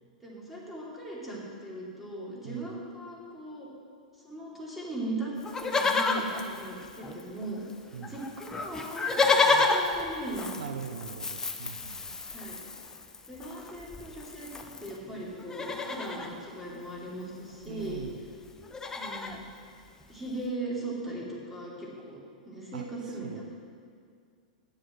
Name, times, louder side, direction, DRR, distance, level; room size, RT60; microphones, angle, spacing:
voice 1, 0.2-3.7 4.2-5.3 5.6-7.7 8.0-11.0 12.3-12.6 13.3-18.0 18.9-19.4 20.1-22.2 22.4-23.4, right 1 dB, 5° right, -6 dB, 3.1 m, -38 dB
Livestock farm animals working animals, 5.4-7.4 7.7-7.8 8.0-15.0 15.4-16.3 17.5-17.6 17.8-18.1 18.4-19.4 20.0-20.1, left 3 dB, 15° left, 0.8 m, -30 dB
voice 2, 10.6-12.2 17.7-18.2 22.7-22.9 23.2-23.5, right 7 dB, 65° right, 8 dB, 0.5 m, -41 dB
8.8 x 7.5 x 7.6 m, 2.2 s
figure-of-eight pair, 105°, 4 cm